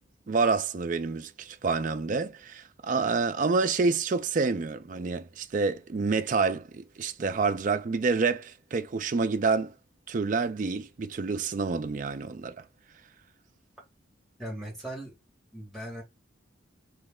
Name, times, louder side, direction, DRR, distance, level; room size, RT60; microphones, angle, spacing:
voice 1, 0.3-9.7 10.1-12.6, right 4 dB, 40° right, 0.4 m, -28 dB
voice 2, 14.4-15.1 15.5-16.0, right 1 dB, ahead, 1.8 m, -38 dB
3.1 x 3.1 x 3.6 m
head